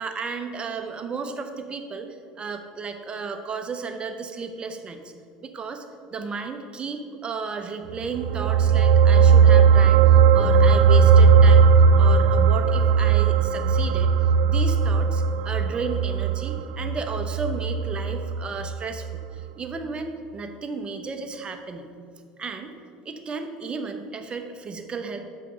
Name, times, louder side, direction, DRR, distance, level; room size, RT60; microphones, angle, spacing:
voice 1, 0.0-2.1 2.4-5.0 5.4-5.8 6.1-11.7 12.0-14.1 14.4-19.1 19.3-21.9 22.4-22.7 23.0-25.2, right 4 dB, 30° right, 6 dB, 1.0 m, -33 dB
sound 1, 8.0-18.8 19.1-19.3, right 6 dB, 70° right, 0.4 m, -17 dB
6.2 x 5.7 x 6.6 m, 2.3 s
hypercardioid pair, 80°, 4 cm